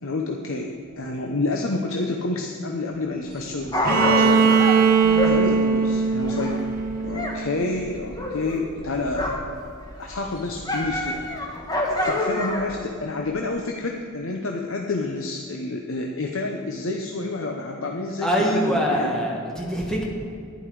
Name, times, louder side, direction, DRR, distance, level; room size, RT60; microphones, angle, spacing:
voice 1, 0.0-4.6 5.0-6.6 7.0-9.4 10.0-11.2 11.8-19.2, left 2 dB, 65° left, 2 dB, 0.8 m, -29 dB
Dog, 3.3-7.4 7.6-9.6 9.9-12.8 13.4-13.5, left 1 dB, 20° left, 1.4 m, -28 dB
Bowed string instrument, 3.8-7.7, right 5 dB, 45° right, 1.2 m, -20 dB
voice 2, 5.0-5.4 18.2-20.0, equal, 5° left, -3 dB, 1.7 m, -24 dB
11.0 x 10.5 x 4.8 m, 2.5 s
head